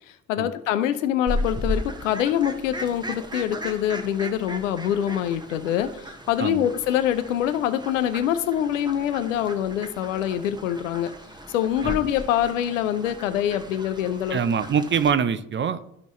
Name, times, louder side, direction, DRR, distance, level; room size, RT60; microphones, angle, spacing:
voice 1, 0.1-11.1 11.5-14.4, left 10 dB, 80° left, 10 dB, 0.6 m, -25 dB
Fowl, 1.3-15.1, equal, 10° right, 1.1 m, -36 dB
voice 2, 14.3-16.0, right 7 dB, 30° right, 14 dB, 0.6 m, -24 dB
12.0 x 5.3 x 3.1 m, 0.77 s
hypercardioid pair, 50°, 38 cm